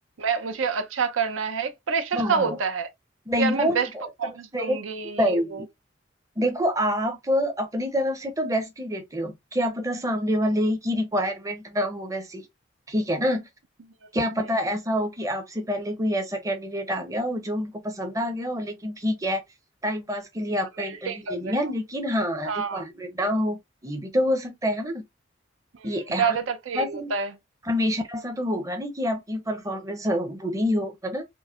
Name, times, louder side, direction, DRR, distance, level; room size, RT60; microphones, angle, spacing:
voice 1, 0.2-2.9 3.4-3.9 4.2-5.6 20.8-21.5 22.5-22.8 25.8-25.9 26.2-27.3, right 5 dB, 90° right, 0.6 m, -27 dB
voice 2, 2.1-2.6 3.3-4.1 4.5-4.8 5.2-5.7 6.4-12.4 12.9-13.5 14.1-19.4 19.8-25.0 25.8-26.4 26.7-27.1 27.6-31.3, equal, 15° right, 0.6 m, -27 dB
4.5 x 2.1 x 2.4 m
head